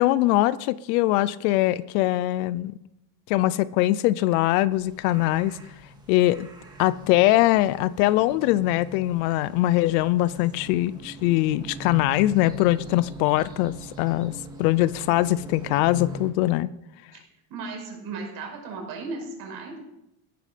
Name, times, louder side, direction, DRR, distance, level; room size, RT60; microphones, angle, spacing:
voice 1, 0.0-2.7 3.3-5.6 6.1-6.5 6.8-14.3 14.6-16.7, left 16 dB, 60° left, 0.7 m, -22 dB
sound 1, 4.7-16.3, equal, 10° right, 2.3 m, -42 dB
voice 2, 17.5-19.8, right 4 dB, 45° right, 5.6 m, -35 dB
16.0 x 13.0 x 5.1 m
cardioid pair, 175°, 50 cm